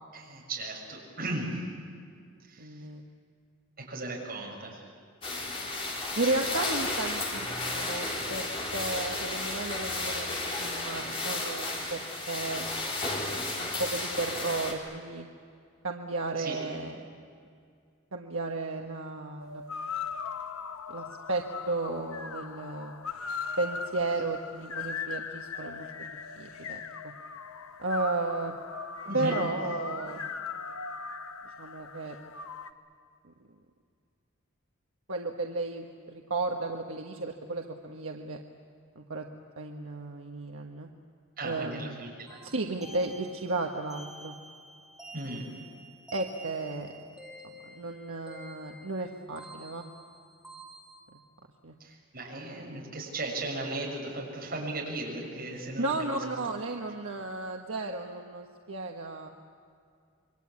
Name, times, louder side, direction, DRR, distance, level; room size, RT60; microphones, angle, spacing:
voice 1, 0.1-1.6 2.5-2.8 3.8-4.8 16.4-16.5 29.0-29.4 41.4-42.4 45.1-45.5 51.8-56.5, right 2 dB, 45° right, -2 dB, 6.9 m, -36 dB
voice 2, 2.6-3.1 6.2-12.0 12.3-12.7 13.5-15.3 15.8-17.1 18.1-19.6 20.9-23.0 23.6-27.1 27.8-28.5 29.1-30.2 31.6-32.2 33.2-33.3 35.1-38.4 38.9-39.3 39.6-40.9 41.4-42.0 42.4-44.3 46.1-46.9 47.4-49.8 51.1-51.2 51.6-51.8 55.8-59.3, right 2 dB, 75° right, 2 dB, 1.4 m, -34 dB
sound 1, 5.2-14.7, left 2 dB, 25° left, 3.6 m, -33 dB
sound 2, 19.4-32.7, left 5 dB, 90° left, 1.1 m, -39 dB
sound 3, 42.3-51.0, right 1 dB, ahead, 2.6 m, -50 dB
27.0 x 23.5 x 8.5 m, 2.2 s
head